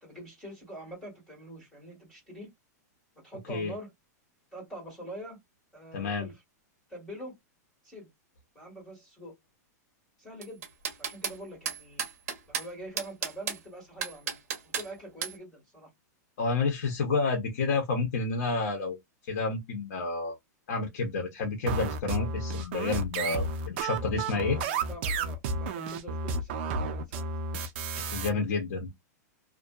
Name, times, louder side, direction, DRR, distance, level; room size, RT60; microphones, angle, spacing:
voice 1, 0.0-2.5 3.2-3.9 4.5-5.4 5.7-6.4 6.9-7.3 7.8-8.1 8.6-9.3 10.2-10.7 11.0-12.1 12.5-14.4 14.6-15.9 24.3-27.3, right 1 dB, 5° left, 1.8 m, -44 dB
voice 2, 5.9-6.3 16.4-19.0 19.3-20.4 20.7-24.6 27.9-28.9, left 3 dB, 55° left, 0.9 m, -30 dB
sound 1, 10.4-11.4 11.7-12.7 13.0-13.6 14.0-14.9 15.2-15.4, right 7 dB, 55° right, 1.0 m, -33 dB
sound 2, 21.7-28.3, right 3 dB, 40° right, 0.5 m, -32 dB
2.5 x 2.5 x 2.3 m
supercardioid pair, 175°, 9 cm